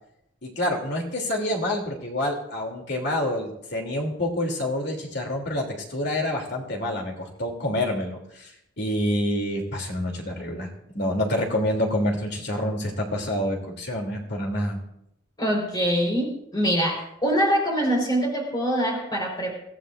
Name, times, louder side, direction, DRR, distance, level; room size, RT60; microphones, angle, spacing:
voice 1, 0.4-8.5 8.8-10.7 10.9-14.8, left 1 dB, 55° left, 1 dB, 2.9 m, -27 dB
voice 2, 15.4-19.6, equal, 20° left, 0 dB, 4.3 m, -24 dB
24.0 x 15.0 x 2.5 m, 0.79 s
head